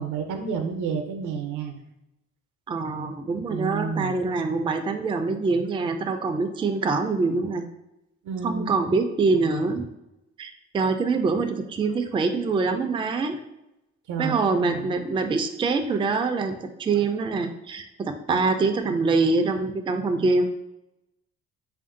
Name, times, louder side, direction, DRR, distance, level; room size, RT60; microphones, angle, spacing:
voice 1, 0.0-1.8 3.5-4.2 8.2-8.7 14.1-15.0, right 5 dB, 80° right, 5 dB, 0.6 m, -30 dB
voice 2, 2.7-7.6 8.4-9.9 10.4-13.4 14.2-20.4, right 4 dB, 15° right, 6 dB, 0.3 m, -24 dB
3.4 x 2.6 x 3.7 m, 0.89 s
cardioid pair, 90°, 30 cm